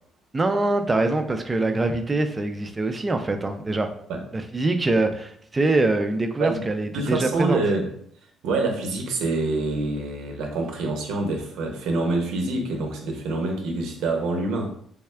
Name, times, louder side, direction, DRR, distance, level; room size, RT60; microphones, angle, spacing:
voice 1, 0.3-3.9 4.3-7.6, right 2 dB, 20° right, 6 dB, 0.3 m, -24 dB
voice 2, 6.9-7.9 8.4-14.7, right 2 dB, 90° right, 2 dB, 0.7 m, -26 dB
3.5 x 2.3 x 3.2 m, 0.65 s
cardioid pair, 145°, 0 cm